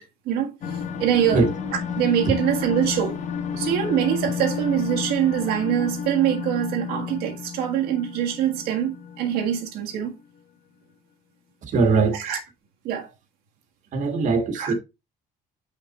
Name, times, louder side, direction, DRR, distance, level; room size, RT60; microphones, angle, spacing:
voice 1, 0.0-1.5 2.0-3.2 3.6-10.1 12.1-12.4 12.8-13.1 14.5-14.7, right 10 dB, 80° right, 1.6 m, -24 dB
sound 1, 0.6-10.0, left 7 dB, 50° left, 1.0 m, -31 dB
voice 2, 11.7-12.2 13.9-14.7, right 4 dB, 50° right, 1.6 m, -21 dB
5.8 x 4.5 x 4.2 m
cardioid pair, 145°, 16 cm